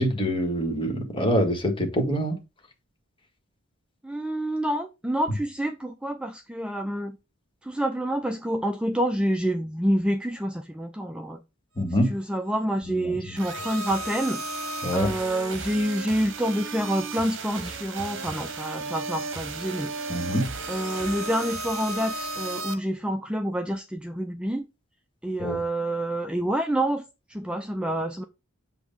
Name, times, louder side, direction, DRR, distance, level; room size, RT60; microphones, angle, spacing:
voice 1, 0.0-2.4 11.8-12.2 13.0-13.1 14.8-15.1 20.1-20.5 25.4-25.6, equal, 25° left, 1.7 m, -25 dB
voice 2, 4.0-7.2 7.6-11.4 12.1-14.4 14.9-19.9 20.7-24.7 25.2-28.2, right 1 dB, 5° right, 0.4 m, -28 dB
sound 1, 13.4-22.7, right 3 dB, 65° right, 1.0 m, -34 dB
8.0 x 2.8 x 5.3 m
head